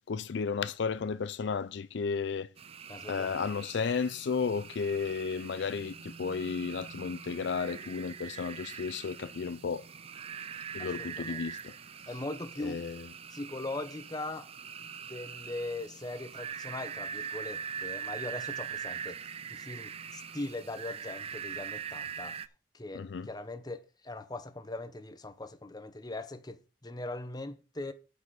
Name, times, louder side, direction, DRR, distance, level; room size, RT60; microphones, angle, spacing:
voice 1, 0.1-2.5 3.1-9.9 10.7-11.7 12.6-13.1 22.9-23.3, left 5 dB, 70° left, 0.4 m, -33 dB
sound 1, 2.6-22.5, right 7 dB, 35° right, 0.4 m, -42 dB
voice 2, 2.9-3.4 10.8-10.9 11.2-11.4 12.1-12.8 13.3-14.5 14.8-19.2 19.5-22.4 22.7-27.9, left 2 dB, 20° left, 0.9 m, -40 dB
7.7 x 5.5 x 7.4 m
head